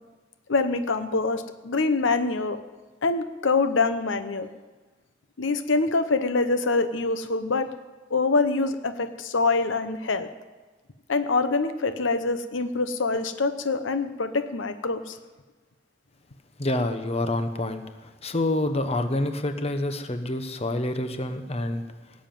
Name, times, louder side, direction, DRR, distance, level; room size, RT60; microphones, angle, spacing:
voice 1, 0.5-2.6 3.0-4.5 5.4-7.7 8.1-10.3 11.1-15.2, left 3 dB, 85° left, 10 dB, 0.9 m, -25 dB
voice 2, 16.6-21.8, left 1 dB, 35° left, 8 dB, 1.0 m, -27 dB
17.0 x 7.4 x 9.2 m, 1.3 s
head